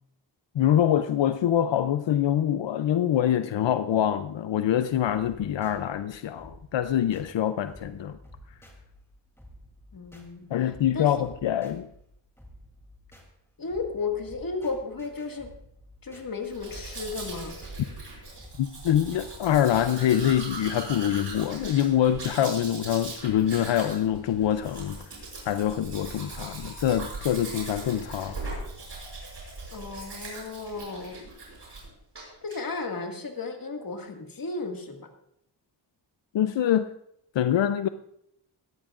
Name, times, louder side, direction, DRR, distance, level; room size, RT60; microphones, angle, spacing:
voice 1, 0.5-8.2 10.5-11.9 18.6-25.1 25.5-28.4 36.3-36.9 37.3-37.9, left 10 dB, 90° left, 0.6 m, -25 dB
sound 1, 4.9-20.8, equal, 5° left, 2.9 m, -52 dB
voice 2, 9.9-10.5 10.9-11.2 13.6-15.5 16.0-17.6 29.7-31.2 32.4-35.1, left 4 dB, 50° left, 1.9 m, -34 dB
Domestic sounds home sounds, 16.4-31.9 32.1-32.6, right 3 dB, 70° right, 6.4 m, -40 dB
19.0 x 14.0 x 2.5 m
wide cardioid pair, 100°, 43 cm